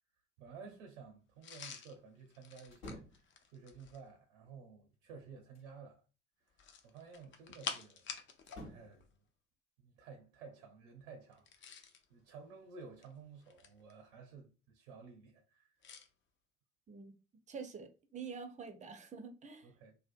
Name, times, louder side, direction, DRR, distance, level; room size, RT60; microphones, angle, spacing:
voice 1, 0.4-3.2 3.5-6.0 6.4-8.1 8.6-9.1 9.8-11.8 12.1-15.7 19.6-19.9, right 5 dB, 75° right, 0.5 m, -54 dB
sound 1, 1.4-4.1 6.5-8.7 8.9-9.1 11.3-12.0 12.8-13.9 15.8-16.1, left 6 dB, 35° left, 0.4 m, -48 dB
sound 2, 2.7-3.3 4.9-5.8 8.4-9.0, left 1 dB, 70° left, 1.0 m, -51 dB
voice 2, 17.5-19.7, right 5 dB, 20° right, 0.4 m, -47 dB
2.6 x 2.1 x 2.4 m
figure-of-eight pair, 55°, 35 cm